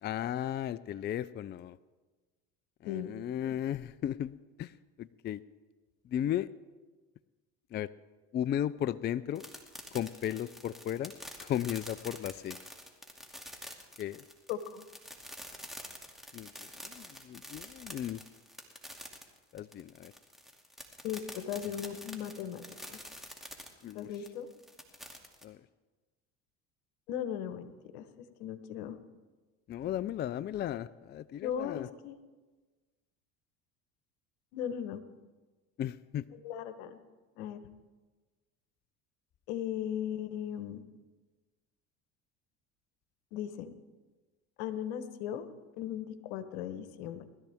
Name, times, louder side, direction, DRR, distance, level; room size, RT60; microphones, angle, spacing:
voice 1, 0.0-1.8 2.8-5.4 6.0-6.5 7.7-7.9 8.3-9.4 9.9-11.1 11.4-12.6 14.0-14.2 16.3-18.2 19.5-20.1 23.8-24.1 25.4-25.7 29.7-31.9 35.8-36.3, left 11 dB, 30° left, 16 dB, 0.4 m, -35 dB
sound 1, 9.4-25.4, equal, ahead, 2.4 m, -47 dB
voice 2, 14.5-14.8 21.0-22.6 22.9-23.0 23.9-24.5 27.1-28.1 28.4-29.0 31.4-32.2 34.5-35.0 36.4-37.0 37.4-37.7 39.5-40.8 43.3-43.7 44.6-45.5 45.8-47.3, left 9 dB, 80° left, 11 dB, 1.2 m, -37 dB
20.5 x 13.0 x 3.5 m, 1.3 s
supercardioid pair, 85°, 33 cm